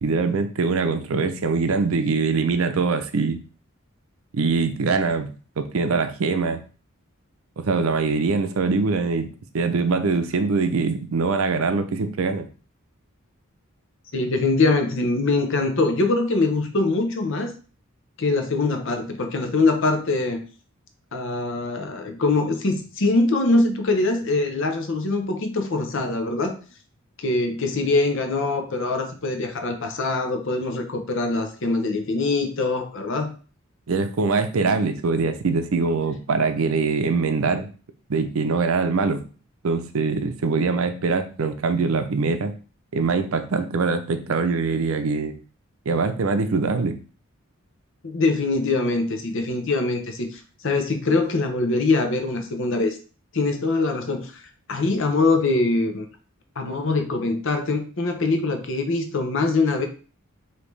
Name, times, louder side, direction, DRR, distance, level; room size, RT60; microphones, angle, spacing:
voice 1, 0.0-3.4 4.3-5.3 5.6-6.6 7.6-9.3 9.5-12.5 33.9-37.7 38.1-39.2 39.6-42.5 42.9-45.3 45.9-47.0, right 4 dB, 75° right, 8 dB, 0.5 m, -23 dB
voice 2, 14.1-17.5 18.2-20.4 21.1-26.5 27.2-33.3 48.0-53.0 53.3-54.4 54.7-56.1 56.6-59.9, left 3 dB, 60° left, 5 dB, 0.8 m, -23 dB
5.1 x 2.8 x 3.2 m, 0.37 s
head